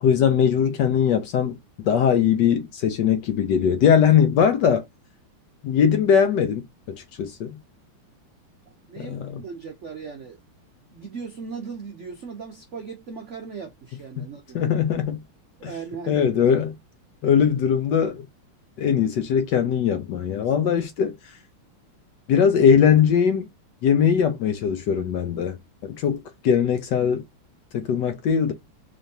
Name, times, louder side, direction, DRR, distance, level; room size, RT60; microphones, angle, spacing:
voice 1, 0.0-1.6 1.8-4.8 5.6-7.6 9.0-9.4 14.5-15.2 15.6-15.7 16.1-16.7 17.2-18.2 18.8-21.2 22.3-23.5 23.8-27.2 27.7-28.5, left 7 dB, 70° left, 1.1 m, -20 dB
voice 2, 8.7-10.4 10.9-14.7 15.6-16.3 20.4-20.5, right 5 dB, 75° right, 0.6 m, -38 dB
3.7 x 3.4 x 2.7 m
omnidirectional pair, 2.4 m